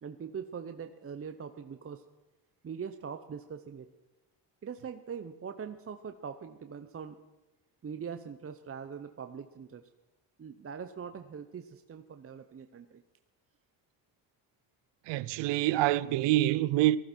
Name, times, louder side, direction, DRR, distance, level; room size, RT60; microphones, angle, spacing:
voice 1, 0.0-2.0 2.6-3.9 4.6-7.2 7.8-9.8 10.4-13.0, right 6 dB, 30° right, 0.9 m, -42 dB
voice 2, 15.1-17.0, right 15 dB, 70° right, 0.7 m, -26 dB
19.0 x 14.5 x 4.5 m
supercardioid pair, 85°, 44 cm